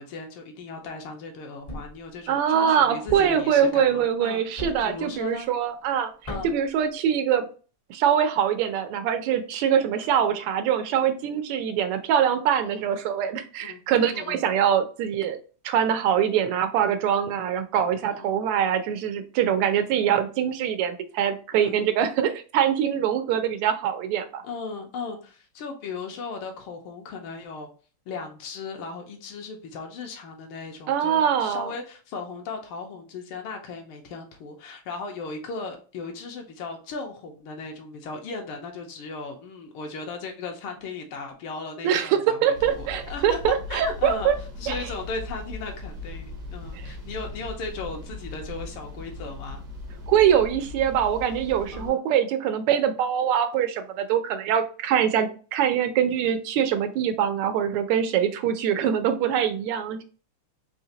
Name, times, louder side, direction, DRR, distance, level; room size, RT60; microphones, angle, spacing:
voice 1, 0.0-4.4 4.8-5.5 6.2-6.5 12.6-12.9 13.6-13.8 14.1-14.4 18.2-18.4 21.6-21.9 24.4-27.7 28.1-43.4 43.7-44.3 44.6-49.6 51.7-52.0, left 4 dB, 80° left, 4 dB, 1.7 m, -37 dB
Thump thud, 1.7-2.1 3.1-3.5 4.6-5.0 6.3-6.7, equal, 60° left, 0.3 m, -36 dB
voice 2, 2.3-6.1 6.4-7.5 7.9-15.4 15.6-24.4 30.9-31.7 41.8-44.3 44.7-44.8 50.1-60.0, right 9 dB, 90° right, 8 dB, 1.6 m, -23 dB
sound 1, 42.5-51.9, left 2 dB, 60° right, 0.9 m, -38 dB
4.3 x 2.8 x 2.7 m, 0.37 s
omnidirectional pair, 2.4 m